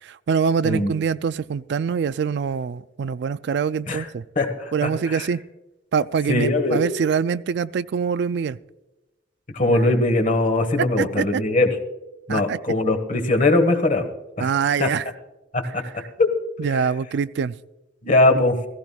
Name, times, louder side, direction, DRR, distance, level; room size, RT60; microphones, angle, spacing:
voice 1, 0.0-4.2 4.7-5.4 5.9-8.6 11.0-11.4 12.3-12.6 14.4-15.1 16.6-17.6, right 6 dB, 65° right, 16 dB, 0.3 m, -24 dB
voice 2, 4.3-5.3 6.3-6.8 9.5-11.7 12.3-14.1 14.4-14.5 14.8-14.9 15.5-16.3 18.0-18.6, left 2 dB, 45° left, 7 dB, 1.3 m, -21 dB
16.0 x 15.5 x 2.3 m, 1.0 s
head